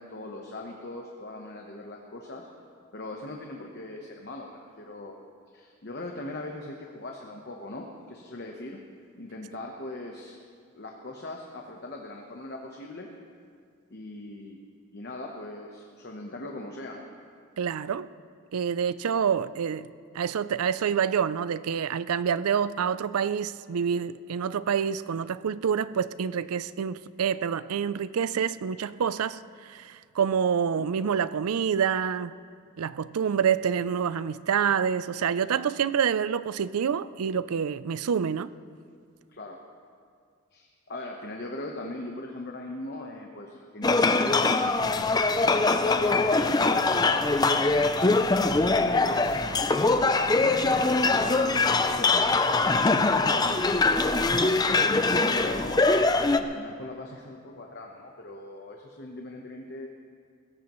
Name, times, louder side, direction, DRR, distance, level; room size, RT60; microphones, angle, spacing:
voice 1, 0.0-2.5 2.9-5.2 5.5-8.8 9.2-10.4 10.7-13.1 13.9-14.6 14.9-17.0 30.8-30.9 35.5-35.6 39.3-39.6 40.5-47.5 48.3-54.5 54.8-55.8 56.4-59.9, left 2 dB, 45° left, 1.0 m, -40 dB
voice 2, 17.6-18.1 18.5-19.9 20.1-32.4 32.8-38.5, right 7 dB, 80° right, 0.4 m, -27 dB
sound 1, 43.8-56.4, left 3 dB, 20° left, 0.4 m, -23 dB
sound 2, 49.5-49.8 50.2-50.5 50.8-51.7 52.1-52.4 52.7-53.0 53.3-54.0, left 2 dB, 90° left, 3.3 m, -46 dB
21.0 x 16.0 x 3.1 m
head